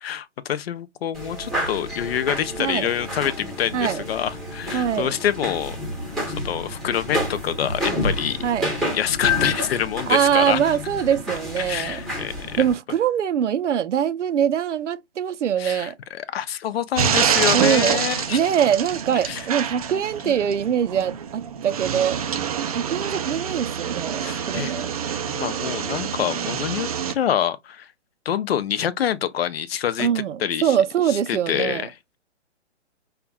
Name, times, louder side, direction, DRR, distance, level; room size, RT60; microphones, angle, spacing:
voice 1, 0.0-5.8 6.3-8.4 8.9-10.6 11.6-12.6 15.6-18.4 19.2-19.5 20.2-20.3 24.2-26.9 27.1-27.9 28.3-30.1 30.4-30.8 31.1-32.2, left 9 dB, 60° left, 0.6 m, -26 dB
sound 1, 1.2-12.8, left 1 dB, ahead, 1.0 m, -29 dB
voice 2, 4.7-5.1 8.4-8.7 10.1-12.0 12.6-16.0 17.5-18.0 18.3-22.2 22.7-24.9 30.0-31.9, right 9 dB, 85° right, 0.6 m, -23 dB
sound 2, 17.0-27.1, right 8 dB, 35° right, 0.4 m, -26 dB
5.7 x 2.3 x 2.3 m
hypercardioid pair, 140°, 35 cm